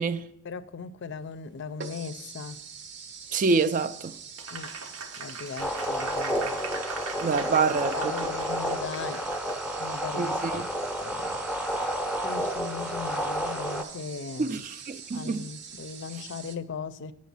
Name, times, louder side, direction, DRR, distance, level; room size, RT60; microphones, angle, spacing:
voice 1, 0.4-2.6 4.5-4.7 5.2-6.5 7.9-9.3 9.8-10.6 11.0-11.4 11.7-14.6 15.1-17.1, left 5 dB, 55° left, 0.4 m, -38 dB
sound 1, 1.1-1.2 1.8-16.6, right 6 dB, 55° right, 0.7 m, -44 dB
voice 2, 3.3-4.1 7.2-7.9 10.2-10.6 14.4-14.6 14.9-15.4, right 4 dB, 40° right, 0.3 m, -26 dB
Applause, 4.4-9.9, right 4 dB, 90° right, 1.0 m, -40 dB
sound 2, 5.6-13.8, equal, 5° right, 0.6 m, -31 dB
8.1 x 6.5 x 5.4 m
head